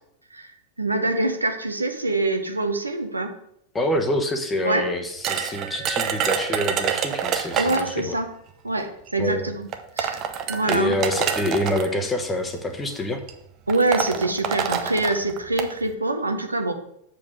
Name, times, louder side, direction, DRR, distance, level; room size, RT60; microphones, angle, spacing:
voice 1, 0.8-3.3 4.6-4.8 7.6-8.3 8.6-9.7 10.0-10.2 10.5-11.0 13.7-16.7, right 2 dB, 80° right, 6 dB, 0.9 m, -24 dB
voice 2, 3.7-8.1 9.2-9.5 10.7-13.2, left 1 dB, 15° left, 5 dB, 1.2 m, -26 dB
sound 1, 5.2-8.0 9.1-9.2 9.7-11.9 12.8-13.0 13.3-13.4 13.7-15.7, right 8 dB, 35° right, 0.8 m, -26 dB
6.9 x 5.2 x 6.4 m, 0.75 s
figure-of-eight pair, 90°, 0 cm